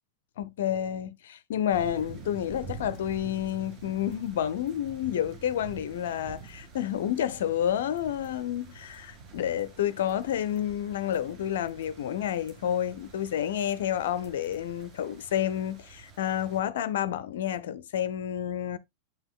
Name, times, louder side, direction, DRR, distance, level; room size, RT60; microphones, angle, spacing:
voice 1, 0.4-18.8, left 10 dB, 60° left, 0.4 m, -30 dB
sound 1, 1.7-16.6, right 4 dB, 40° right, 2.5 m, -47 dB
8.6 x 6.1 x 2.3 m
figure-of-eight pair, 90°, 0 cm